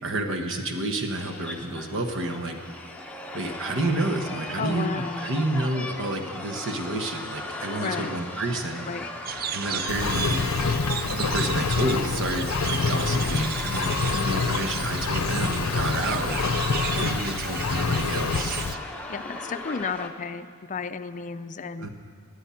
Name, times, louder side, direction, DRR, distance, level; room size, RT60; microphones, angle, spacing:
voice 1, 0.0-2.6 3.3-8.8 9.5-10.4 11.1-16.4 17.0-18.6 21.8-21.9, right 2 dB, 60° right, 5 dB, 1.3 m, -30 dB
sound 1, 1.1-20.1, left 2 dB, 5° left, 1.0 m, -37 dB
voice 2, 4.6-5.3 7.8-8.1 8.9-9.1 14.1-14.6 17.0-17.1 19.1-21.9, left 5 dB, 35° left, 11 dB, 0.5 m, -33 dB
sound 2, 9.3-18.8, right 8 dB, 45° right, 0.4 m, -35 dB
Engine, 9.9-18.7, left 4 dB, 75° left, 0.6 m, -27 dB
19.0 x 9.9 x 5.8 m, 2.1 s
head